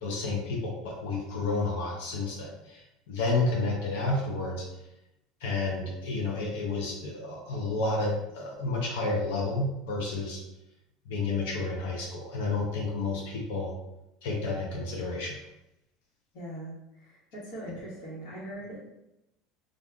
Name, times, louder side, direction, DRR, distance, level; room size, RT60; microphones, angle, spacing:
voice 1, 0.0-4.7 5.4-10.4 11.1-13.7 14.2-15.4, left 3 dB, 85° left, -1 dB, 0.6 m, -30 dB
voice 2, 16.3-18.8, right 1 dB, 70° left, -7 dB, 1.2 m, -41 dB
3.6 x 2.4 x 2.3 m, 0.90 s
supercardioid pair, 125°, 0 cm